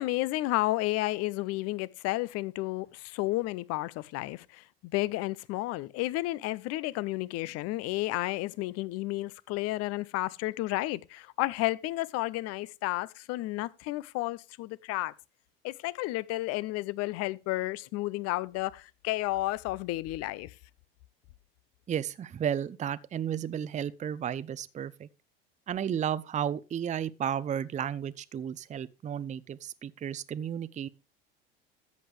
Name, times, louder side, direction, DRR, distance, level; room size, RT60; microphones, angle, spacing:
voice 1, 0.0-15.1 15.6-20.5, left 18 dB, 55° left, 0.7 m, -32 dB
voice 2, 21.9-25.1 25.7-30.9, right 9 dB, 25° right, 0.6 m, -33 dB
13.5 x 8.0 x 3.3 m
hypercardioid pair, 80°, 30 cm